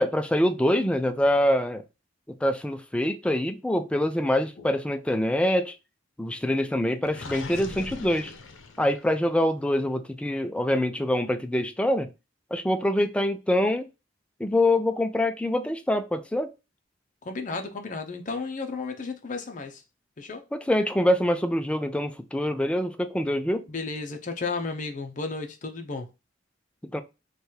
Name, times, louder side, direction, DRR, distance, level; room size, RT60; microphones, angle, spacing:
voice 1, 0.0-1.8 2.3-5.7 6.2-8.3 8.8-12.1 12.5-13.9 14.4-16.5 20.5-23.7 26.9-27.0, left 1 dB, 5° left, 0.3 m, -25 dB
Gurgling, 7.1-9.2, left 3 dB, 90° left, 0.6 m, -40 dB
voice 2, 17.2-19.8 20.2-20.4 23.7-26.1, left 4 dB, 40° left, 0.6 m, -33 dB
3.3 x 2.3 x 4.3 m
head